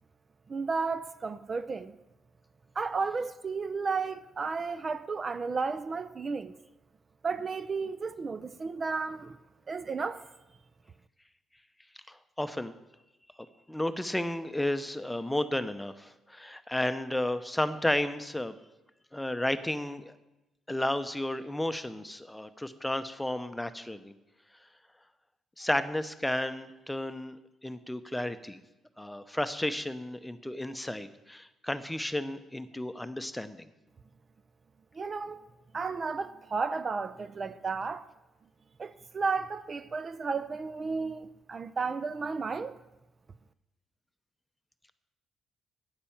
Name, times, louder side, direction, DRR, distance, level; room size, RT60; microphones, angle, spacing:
voice 1, 0.5-2.0 2.8-6.5 7.2-9.4 9.7-10.2 34.9-35.4 35.7-38.1 38.8-42.8, right 4 dB, 40° right, 0.5 m, -33 dB
voice 2, 12.1-12.7 13.7-18.6 19.1-20.1 20.7-24.1 25.6-27.4 27.6-28.6 29.0-33.7, left 1 dB, 5° left, 0.8 m, -32 dB
9.9 x 8.9 x 7.2 m
cardioid pair, 90°, 0 cm